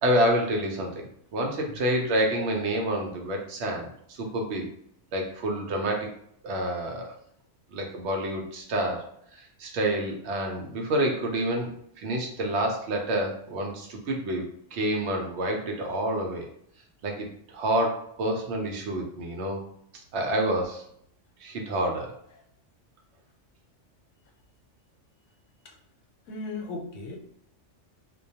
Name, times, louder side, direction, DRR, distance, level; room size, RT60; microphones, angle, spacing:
voice 1, 0.0-4.7 5.1-6.1 6.4-7.1 7.7-9.1 9.3-14.5 14.7-16.5 17.0-19.6 20.1-20.8 21.4-22.2, right 1 dB, 70° right, 2 dB, 0.8 m, -28 dB
voice 2, 26.3-27.2, left 3 dB, 85° left, 1 dB, 1.0 m, -36 dB
2.2 x 2.2 x 2.7 m, 0.69 s
omnidirectional pair, 1.3 m